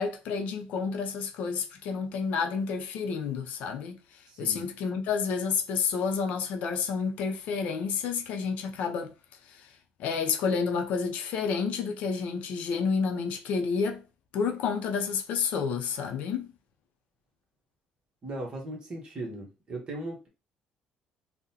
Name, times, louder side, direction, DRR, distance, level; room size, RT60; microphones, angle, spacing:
voice 1, 0.0-4.0 4.4-9.1 9.5-9.6 10.0-14.0 14.3-16.5, left 5 dB, 65° left, 0.5 m, -30 dB
voice 2, 4.3-4.6 18.2-20.3, right 1 dB, 30° right, 1.0 m, -38 dB
3.7 x 2.1 x 2.8 m
cardioid pair, 155°, 3 cm